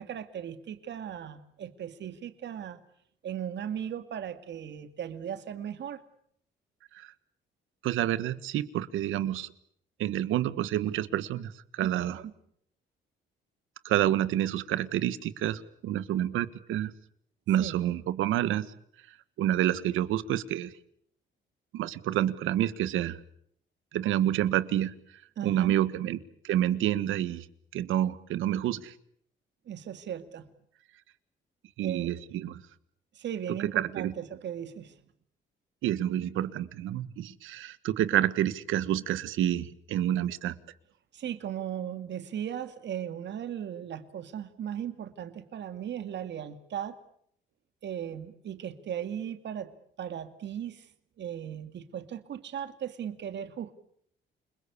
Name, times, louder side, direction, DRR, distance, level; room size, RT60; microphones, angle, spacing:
voice 1, 0.0-2.8 3.2-6.0 12.1-12.3 17.6-17.8 25.4-25.8 29.7-30.4 31.8-32.1 33.1-34.9 41.1-47.0 47.8-49.7 50.0-50.9 51.2-53.7, right 9 dB, 65° right, 10 dB, 2.2 m, -37 dB
voice 2, 7.8-9.5 10.0-12.2 13.8-16.9 17.5-18.7 19.4-20.7 21.7-23.2 23.9-24.9 25.4-26.2 26.4-27.5 27.7-28.9 31.8-32.6 33.6-34.1 35.8-40.5, right 12 dB, 85° right, 15 dB, 1.5 m, -28 dB
29.0 x 21.0 x 8.5 m, 0.67 s
cardioid pair, 90°, 20 cm